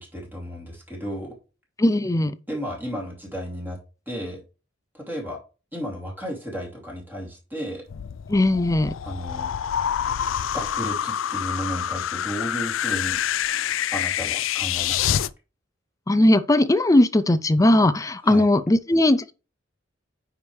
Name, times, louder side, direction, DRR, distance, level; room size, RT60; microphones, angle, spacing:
voice 1, 0.0-1.4 2.5-3.8 4.1-4.4 4.9-5.4 5.7-7.8 9.0-9.5 10.5-13.2 13.5-15.3 18.2-18.5, equal, 10° right, 2.7 m, -33 dB
voice 2, 1.8-2.3 8.3-8.9 16.1-19.3, left 1 dB, 15° left, 0.5 m, -19 dB
sound 1, 7.9-15.3, left 10 dB, 85° left, 0.4 m, -27 dB
9.4 x 5.1 x 3.3 m
head